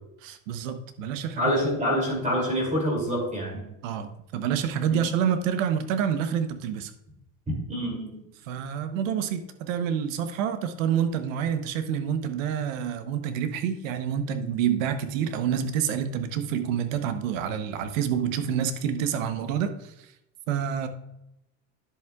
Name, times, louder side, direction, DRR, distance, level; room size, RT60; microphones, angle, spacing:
voice 1, 0.2-1.5 3.8-6.9 8.4-20.1 20.5-20.9, right 8 dB, 90° right, 9 dB, 1.0 m, -28 dB
voice 2, 1.4-3.7 7.7-8.2, equal, 20° right, -1 dB, 2.8 m, -26 dB
10.5 x 7.9 x 2.4 m, 0.83 s
supercardioid pair, 120°, 38 cm